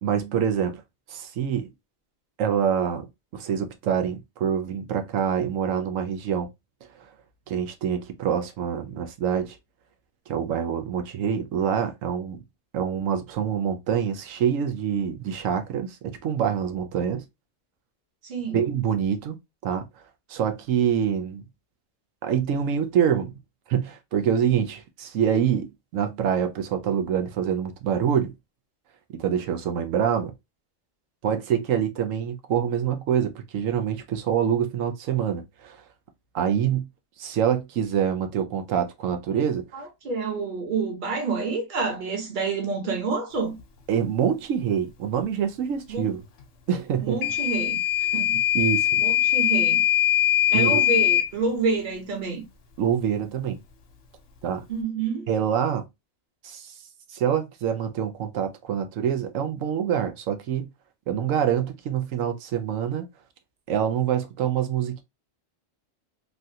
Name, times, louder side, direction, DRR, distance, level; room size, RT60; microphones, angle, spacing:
voice 1, 0.0-0.8 1.1-1.7 2.4-3.1 3.3-6.5 7.5-9.6 10.3-12.4 12.7-17.2 18.5-19.4 19.6-19.8 20.3-21.4 22.2-23.3 23.7-28.3 29.2-30.3 31.2-35.8 36.3-36.9 37.2-39.7 43.9-46.2 46.7-47.2 48.1-48.3 48.5-49.0 50.5-50.8 52.8-53.6 54.4-54.6 55.3-55.9 56.4-56.7 57.1-60.7 61.1-63.1 63.7-65.0, right 8 dB, 80° right, 1.0 m, -25 dB
voice 2, 18.2-18.6 39.7-43.6 45.9-46.1 47.0-47.8 48.1-48.4 49.0-49.8 50.5-52.4 54.7-55.3, right 4 dB, 40° right, 1.1 m, -28 dB
Microwave oven / Alarm, 47.2-51.3, left 11 dB, 70° left, 1.0 m, -21 dB
3.1 x 2.4 x 2.6 m
omnidirectional pair, 1.3 m